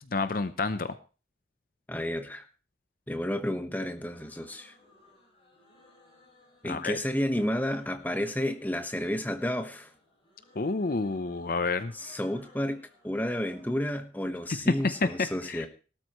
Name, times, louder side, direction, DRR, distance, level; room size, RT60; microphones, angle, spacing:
voice 1, 0.1-0.9 6.6-7.0 10.6-11.9 14.7-14.8 15.0-15.7, left 3 dB, 50° left, 12 dB, 0.6 m, -29 dB
voice 2, 1.9-2.5 3.1-4.7 6.6-9.9 11.9-15.7, left 1 dB, 10° left, 7 dB, 1.1 m, -31 dB
sound 1, 3.8-13.8, left 2 dB, 30° left, 7.6 m, -60 dB
18.0 x 12.5 x 3.1 m, 0.35 s
head